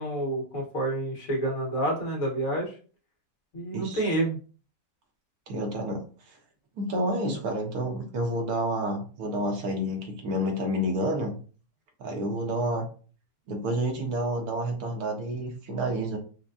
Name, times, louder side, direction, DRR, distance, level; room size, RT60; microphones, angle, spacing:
voice 1, 0.0-2.8 3.5-4.4, right 1 dB, 60° left, -2 dB, 1.7 m, -28 dB
voice 2, 3.7-4.1 5.5-6.0 6.8-11.4 12.0-12.9 13.5-16.2, right 1 dB, 75° right, 3 dB, 1.4 m, -29 dB
5.6 x 2.2 x 2.6 m, 0.39 s
omnidirectional pair, 1.6 m